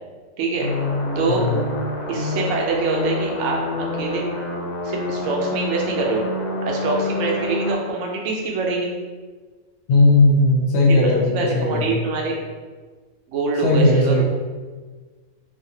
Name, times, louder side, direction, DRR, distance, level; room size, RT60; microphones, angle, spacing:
voice 1, 0.4-0.7 1.2-1.4 2.1-4.3 4.8-6.3 6.6-8.9 10.9-12.4 13.3-14.3, right 3 dB, 65° right, -1 dB, 0.8 m, -24 dB
sound 1, 0.6-7.7, left 2 dB, 85° left, 1.1 m, -27 dB
voice 2, 1.3-1.6 9.9-12.0 13.6-14.3, left 2 dB, 60° left, -2 dB, 0.7 m, -17 dB
2.6 x 2.5 x 2.7 m, 1.4 s
omnidirectional pair, 1.6 m